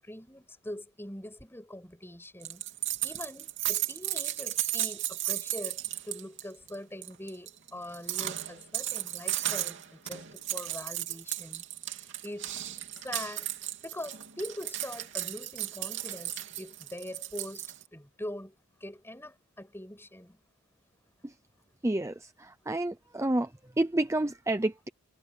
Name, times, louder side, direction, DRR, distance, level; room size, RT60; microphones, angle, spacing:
voice 1, 0.0-2.6 3.0-11.6 12.2-12.5 13.0-13.5 13.8-18.5 18.8-20.4, left 1 dB, 10° left, 7.7 m, -43 dB
sound 1, 2.4-6.4 6.7-6.8 7.0-17.8, right 13 dB, 60° right, 3.0 m, -35 dB
voice 2, 21.8-23.5 23.8-24.9, right 1 dB, 15° right, 0.6 m, -29 dB
head